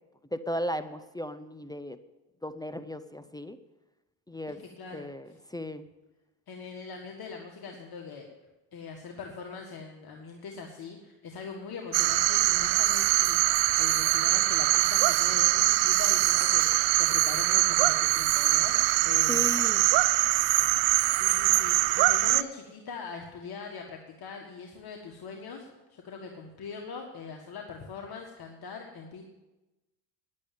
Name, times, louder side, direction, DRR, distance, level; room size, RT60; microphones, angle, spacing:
voice 1, 0.3-2.0 2.4-3.6 4.3-4.6 4.9-5.9 19.3-19.9, left 1 dB, 10° left, 11 dB, 0.6 m, -36 dB
voice 2, 4.6-5.4 6.5-8.3 8.7-19.5 21.1-29.2, left 5 dB, 50° left, 1 dB, 1.8 m, -42 dB
sound 1, 11.9-22.4, right 19 dB, 70° right, 0.6 m, -23 dB
10.5 x 8.5 x 8.7 m, 1.1 s
supercardioid pair, 85°, 47 cm